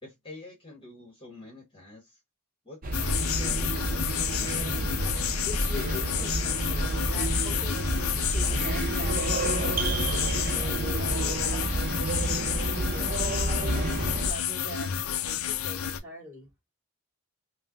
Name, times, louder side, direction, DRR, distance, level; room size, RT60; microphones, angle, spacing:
voice 1, 0.0-2.2 2.6-4.6, left 2 dB, 25° left, 1.2 m, -47 dB
sound 1, 2.8-14.3, right 2 dB, 40° right, 0.6 m, -29 dB
sound 2, 2.9-16.0, left 9 dB, 75° left, 0.5 m, -31 dB
voice 2, 5.4-10.0 10.5-16.5, left 1 dB, 10° right, 2.8 m, -43 dB
5.1 x 2.2 x 2.5 m
head